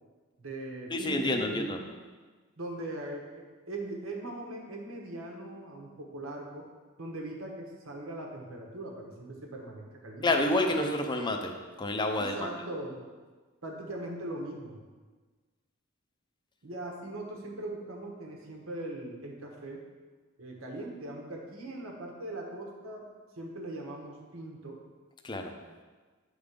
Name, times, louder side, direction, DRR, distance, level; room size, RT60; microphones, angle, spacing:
voice 1, 0.4-1.9 2.6-6.7 7.0-10.3 12.2-13.0 13.6-14.8 16.6-19.8 20.4-23.1 23.4-24.8, right 1 dB, 80° right, 0 dB, 1.2 m, -40 dB
voice 2, 0.9-1.8 10.2-12.5 25.2-25.5, left 2 dB, 20° left, 4 dB, 0.6 m, -29 dB
8.8 x 3.7 x 5.1 m, 1.4 s
head